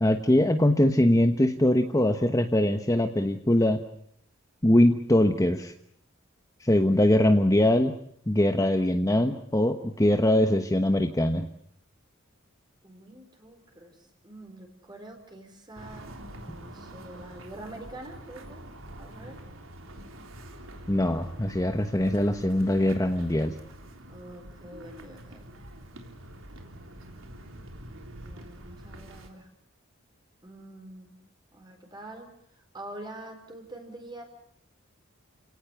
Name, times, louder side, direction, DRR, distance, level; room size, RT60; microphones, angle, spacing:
voice 1, 0.0-3.8 4.6-5.7 6.6-7.9 8.3-11.5 20.9-23.5, left 1 dB, 15° left, 7 dB, 1.1 m, -22 dB
voice 2, 12.8-14.0 14.2-16.1 16.4-18.6 19.0-19.4 24.1-25.5 28.2-29.5 30.4-31.1 31.5-32.3 32.5-34.2, right 1 dB, 20° right, 3 dB, 4.5 m, -45 dB
sound 1, 15.7-29.3, right 1 dB, 80° right, 3.6 m, -45 dB
29.5 x 18.0 x 7.1 m, 0.72 s
head